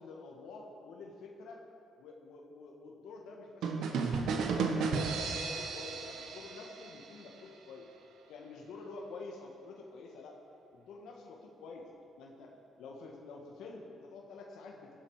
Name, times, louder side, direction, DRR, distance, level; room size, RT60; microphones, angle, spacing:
voice 1, 0.0-1.6 2.0-7.9 8.3-10.4 10.7-11.9 12.2-15.0, left 3 dB, 85° left, 0 dB, 1.6 m, -49 dB
sound 1, 3.6-7.3, right 4 dB, 80° right, 1.4 m, -34 dB
16.5 x 11.0 x 5.0 m, 2.8 s
cardioid pair, 90°, 0 cm